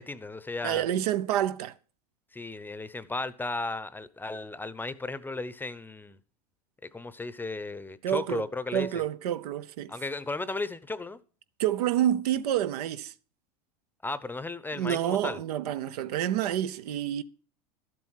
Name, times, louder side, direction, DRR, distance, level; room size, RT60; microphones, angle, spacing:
voice 1, 0.0-0.9 2.3-6.2 6.8-9.0 9.9-11.2 14.0-15.4, left 3 dB, 10° left, 0.8 m, -35 dB
voice 2, 0.6-1.8 8.0-8.4 8.7-9.9 11.6-13.1 14.7-17.2, right 11 dB, 75° right, 0.8 m, -28 dB
12.5 x 7.9 x 5.7 m
hypercardioid pair, 100°, 20 cm